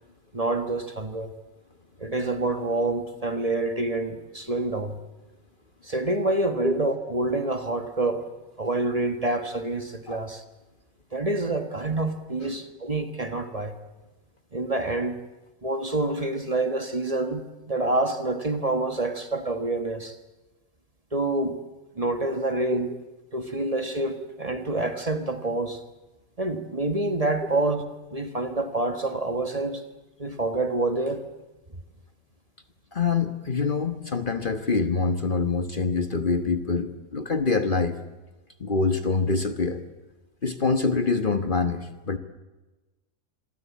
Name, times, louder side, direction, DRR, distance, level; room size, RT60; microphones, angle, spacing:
voice 1, 0.3-1.3 2.0-5.0 5.8-8.3 8.6-10.4 11.1-13.8 14.5-15.1 15.6-20.2 21.1-21.6 21.9-22.9 23.3-25.8 26.4-27.8 28.1-29.8 30.2-31.3, right 2 dB, 25° right, 8 dB, 1.6 m, -27 dB
voice 2, 32.9-38.0 38.6-39.8 40.4-42.2, left 4 dB, 40° left, 9 dB, 1.3 m, -25 dB
26.5 x 23.0 x 8.5 m, 1.1 s
omnidirectional pair, 1.4 m